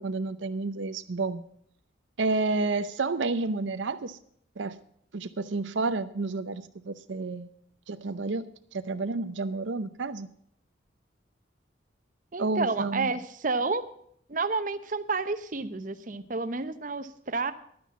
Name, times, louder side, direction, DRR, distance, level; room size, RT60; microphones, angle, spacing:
voice 1, 0.0-1.4 2.2-4.2 4.6-4.8 5.1-7.5 7.9-8.5 8.7-10.3 12.4-13.1, right 3 dB, 85° right, 11 dB, 0.7 m, -30 dB
voice 2, 12.3-13.8 14.3-17.5, right 3 dB, 45° right, 11 dB, 0.8 m, -30 dB
11.0 x 9.6 x 7.3 m, 0.66 s
head